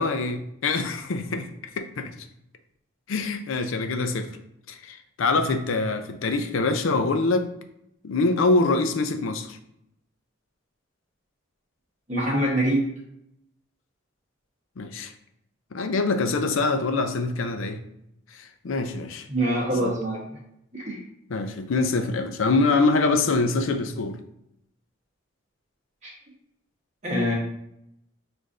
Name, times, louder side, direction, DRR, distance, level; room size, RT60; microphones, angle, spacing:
voice 1, 0.0-1.5 1.8-2.1 3.1-4.3 4.7-7.5 8.0-9.6 14.8-15.1 15.7-17.8 18.3-19.3 19.8-19.9 21.3-24.2, left 3 dB, 80° left, 8 dB, 0.5 m, -24 dB
voice 2, 12.1-12.8 19.3-20.2 20.7-21.0 26.0-26.1 27.0-27.3, right 1 dB, 35° right, -4 dB, 1.0 m, -24 dB
6.3 x 2.6 x 2.4 m, 0.78 s
head